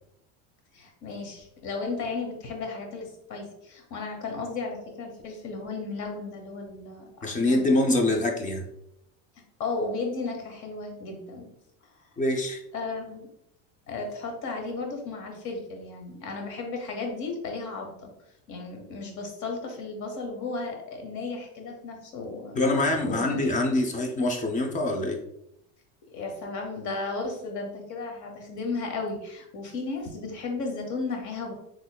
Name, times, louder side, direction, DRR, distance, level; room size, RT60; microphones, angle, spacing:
voice 1, 0.7-7.9 9.6-11.5 12.7-13.3 13.9-18.1 18.5-22.6 23.1-23.4 26.1-31.5, left 3 dB, 45° left, 3 dB, 1.0 m, -34 dB
voice 2, 7.2-8.6 12.2-12.6 22.6-25.2, left 2 dB, 20° left, 2 dB, 0.5 m, -25 dB
3.9 x 3.1 x 2.2 m, 0.79 s
supercardioid pair, 115°, 40 cm